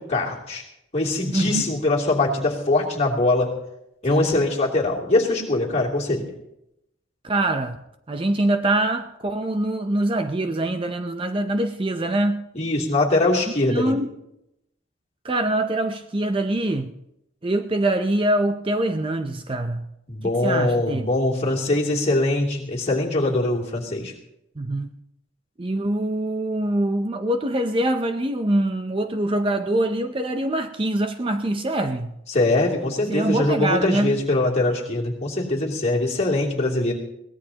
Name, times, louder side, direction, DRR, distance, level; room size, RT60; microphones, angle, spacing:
voice 1, 0.1-0.6 0.9-3.5 4.0-6.3 12.5-13.9 20.1-24.1 32.3-36.9, left 2 dB, 35° left, 2.9 m, -22 dB
voice 2, 1.3-1.7 4.1-4.3 7.2-7.8 8.1-12.4 13.7-14.1 15.2-16.9 17.4-19.9 20.2-21.0 24.6-24.9 25.6-32.2 33.1-34.1, right 1 dB, 25° right, 0.6 m, -24 dB
22.5 x 17.5 x 2.9 m
head